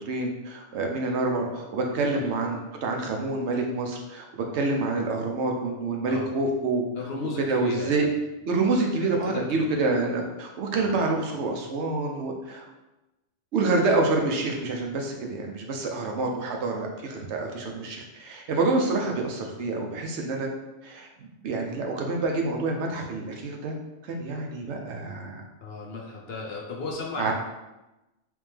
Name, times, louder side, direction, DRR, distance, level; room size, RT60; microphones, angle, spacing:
voice 1, 0.1-6.8 7.5-8.1 8.5-12.6 13.5-20.5 20.8-23.7 24.0-25.5 27.2-27.3, right 3 dB, 70° right, 1 dB, 0.9 m, -27 dB
voice 2, 2.0-2.4 6.1-6.4 7.0-8.0 8.6-8.9 9.2-9.8 10.8-11.0 17.6-17.7 25.6-27.3, left 3 dB, 60° left, -2 dB, 0.8 m, -36 dB
3.4 x 3.1 x 3.3 m, 1.0 s
omnidirectional pair, 1.2 m